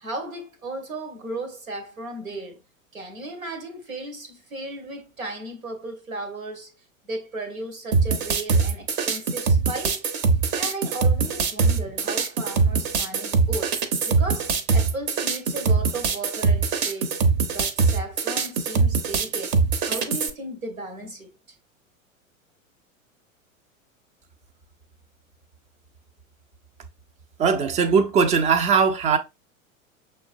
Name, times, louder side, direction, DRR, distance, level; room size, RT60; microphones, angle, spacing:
voice 1, 0.0-2.6 2.9-6.7 7.0-10.0 10.6-13.8 14.1-17.2 17.5-19.6 19.9-21.3, right 2 dB, 80° right, 1.5 m, -35 dB
sound 1, 7.9-20.3, right 4 dB, 40° right, 0.8 m, -22 dB
voice 2, 27.4-29.2, right 5 dB, 15° right, 0.5 m, -20 dB
6.3 x 3.1 x 2.5 m
figure-of-eight pair, 90°, 41 cm